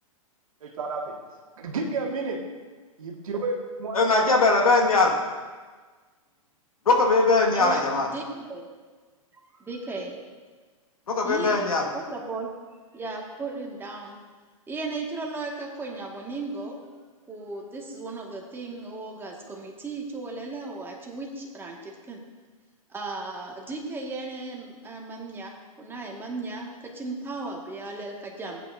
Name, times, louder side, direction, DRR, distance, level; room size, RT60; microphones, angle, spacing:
voice 1, 0.6-1.2 1.6-2.4 3.0-4.0, right 3 dB, 75° right, 0 dB, 1.9 m, -31 dB
voice 2, 3.9-5.1 6.8-8.1 11.1-11.8, left 3 dB, 85° left, 1 dB, 1.8 m, -20 dB
voice 3, 7.5-8.7 9.3-10.2 11.2-11.7 11.9-12.5 12.9-14.2 14.7-16.8 17.3-22.2 22.9-28.6, right 3 dB, 10° right, -1 dB, 1.8 m, -36 dB
15.0 x 9.1 x 2.7 m, 1.4 s
hypercardioid pair, 115°, 18 cm